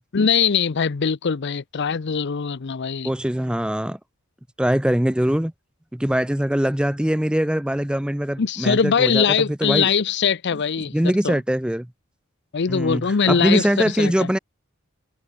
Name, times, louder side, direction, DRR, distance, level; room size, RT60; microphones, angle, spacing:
voice 1, 0.1-3.1 8.4-11.4 12.5-14.3, left 6 dB, 55° left, 0.6 m, -22 dB
voice 2, 3.0-4.0 4.6-5.5 5.9-9.9 10.9-11.9 12.7-14.4, equal, 5° right, 0.6 m, -22 dB
head